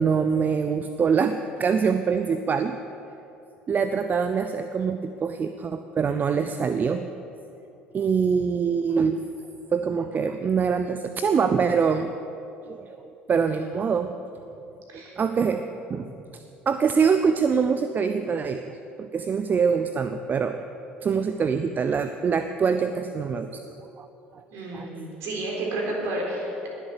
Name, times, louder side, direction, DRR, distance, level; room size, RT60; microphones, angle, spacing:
voice 1, 0.0-2.8 3.7-7.3 7.9-9.2 9.7-12.1 12.7-14.1 14.9-16.1 16.7-20.6 21.0-24.1 24.3-24.4 24.7-24.9, right 6 dB, 30° right, 9 dB, 0.6 m, -24 dB
voice 2, 24.5-26.7, right 2 dB, 50° right, -2 dB, 3.8 m, -31 dB
20.5 x 7.9 x 6.7 m, 2.9 s
figure-of-eight pair, 60°, 6 cm